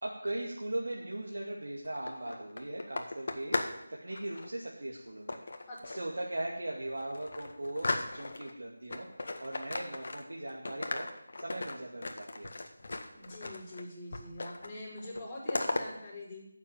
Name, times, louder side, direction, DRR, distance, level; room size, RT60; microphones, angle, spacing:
voice 1, 0.0-3.6 3.9-5.4 5.8-11.1 11.4-12.5, right 1 dB, 75° right, -2 dB, 2.3 m, -39 dB
sound 1, 1.8-3.8 4.1-4.5 5.3-6.1 6.6-6.7 7.0-8.5 8.9-10.4 10.7-13.8 14.1-14.7 15.0-15.8, left 2 dB, 55° left, 1.6 m, -37 dB
voice 2, 5.7-6.1 13.1-16.4, left 1 dB, 15° left, -8 dB, 5.1 m, -44 dB
13.0 x 7.3 x 9.0 m, 0.81 s
figure-of-eight pair, 165°, 0 cm